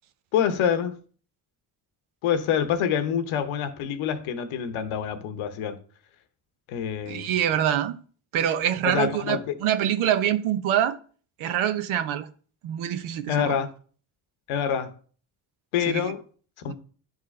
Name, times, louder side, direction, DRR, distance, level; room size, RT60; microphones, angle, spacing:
voice 1, 0.3-1.0 2.2-5.8 6.7-7.3 8.8-9.6 13.3-13.7 14.5-14.9 15.7-16.2 16.6-16.7, left 8 dB, 75° left, 0.9 m, -26 dB
voice 2, 7.1-8.0 8.3-11.0 11.4-12.3 12.6-13.6 15.8-16.1, right 10 dB, 75° right, 0.8 m, -25 dB
10.5 x 3.7 x 3.2 m
supercardioid pair, 50°, 49 cm